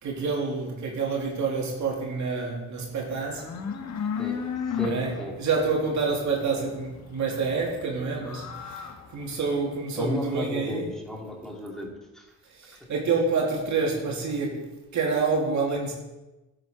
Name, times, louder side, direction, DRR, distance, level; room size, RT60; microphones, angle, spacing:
voice 1, 0.0-3.5 4.8-10.9 12.5-15.9, right 4 dB, 60° right, 2.9 m, -28 dB
sound 1, 3.0-9.8, left 7 dB, 55° left, 1.6 m, -35 dB
voice 2, 4.7-5.3 9.9-12.2, left 1 dB, ahead, 3.3 m, -33 dB
11.5 x 7.7 x 4.5 m
supercardioid pair, 65°, 33 cm